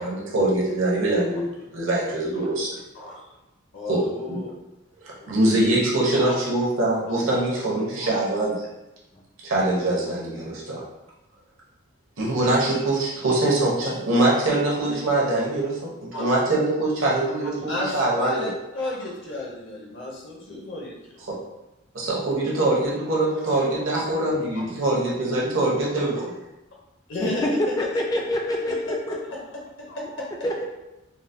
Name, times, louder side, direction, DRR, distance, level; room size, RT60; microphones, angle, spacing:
voice 1, 0.0-2.8 3.9-4.0 4.3-4.4 5.0-8.7 9.4-10.8 12.2-18.5 21.3-21.4 21.9-26.3, right 2 dB, 70° right, -4 dB, 0.9 m, -23 dB
voice 2, 2.9-3.3 3.7-4.5 5.2-5.6 6.1-6.4 8.0-8.1 12.2-12.5 16.1-16.3 17.7-21.2 26.0-26.1 27.1-27.7 29.3-29.4 29.8-30.3, left 2 dB, 55° left, -2 dB, 0.6 m, -33 dB
voice 3, 27.2-27.5 27.8-28.9 30.4-30.6, left 1 dB, 15° left, -1 dB, 0.3 m, -26 dB
3.8 x 2.1 x 2.6 m, 0.96 s
head